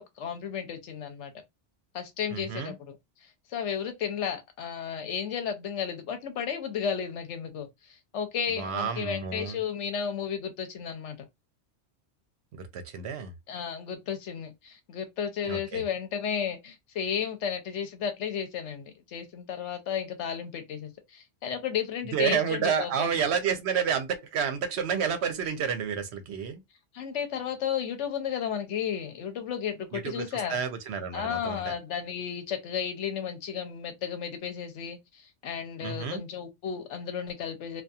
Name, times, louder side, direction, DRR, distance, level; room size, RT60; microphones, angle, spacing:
voice 1, 0.0-1.3 1.9-2.9 3.2-11.3 13.5-23.1 26.9-30.6 31.1-37.8, left 8 dB, 85° left, 1.0 m, -33 dB
voice 2, 2.3-2.7 8.6-9.6 12.5-13.3 15.5-15.8 22.1-26.6 29.9-31.7 35.8-36.2, right 7 dB, 70° right, 0.8 m, -30 dB
2.7 x 2.3 x 2.3 m
omnidirectional pair, 1.2 m